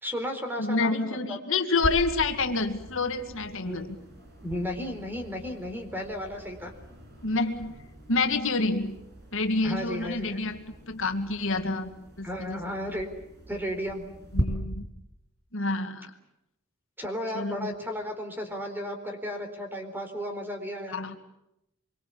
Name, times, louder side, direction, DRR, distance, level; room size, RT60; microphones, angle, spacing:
voice 1, 0.0-1.4 3.6-3.8 4.4-6.7 9.6-10.4 12.2-13.1 13.5-14.1 17.0-21.0, equal, 10° right, 5 dB, 4.2 m, -34 dB
voice 2, 0.6-3.9 7.2-7.7 8.1-8.9 9.3-10.6 10.9-11.9 12.2-12.6 14.3-14.9 15.5-16.1 17.3-17.7 20.9-21.2, left 3 dB, 65° left, 6 dB, 2.2 m, -28 dB
sound 1, 1.8-14.4, right 1 dB, 55° right, 7.0 m, -40 dB
26.0 x 24.0 x 8.6 m, 0.85 s
head